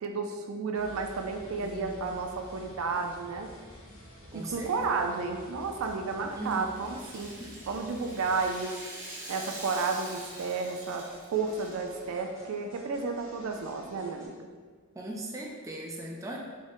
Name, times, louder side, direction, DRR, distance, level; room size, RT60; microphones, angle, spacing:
voice 1, 0.0-3.5 4.3-7.3 7.7-8.7 9.3-14.5, right 4 dB, 85° right, 4 dB, 0.4 m, -32 dB
Game over (unfinished), 0.7-14.3, equal, 70° left, 0.9 m, -51 dB
voice 2, 1.6-2.2 2.5-2.6 4.3-4.7 5.1-5.2 6.3-6.7 7.4-7.6 14.9-16.4, right 1 dB, 15° right, -2 dB, 0.4 m, -39 dB
Rattle (instrument), 5.7-11.9, right 1 dB, 40° right, 1.0 m, -45 dB
3.6 x 2.1 x 3.6 m, 1.5 s
head